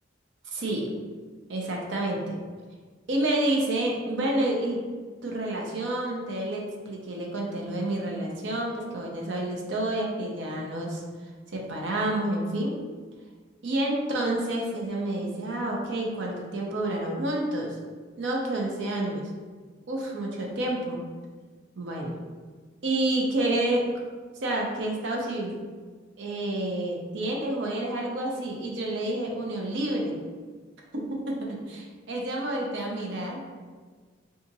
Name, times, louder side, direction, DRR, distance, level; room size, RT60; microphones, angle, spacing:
voice 1, 0.5-0.9 1.5-2.4 3.1-4.8 5.2-11.0 11.5-12.8 13.6-17.8 18.2-19.3 19.9-21.0 21.8-22.2 22.8-23.8 24.4-25.5 26.2-30.2 30.9-33.4, right 1 dB, 60° right, -1 dB, 0.6 m, -29 dB
3.9 x 2.4 x 2.7 m, 1.5 s
head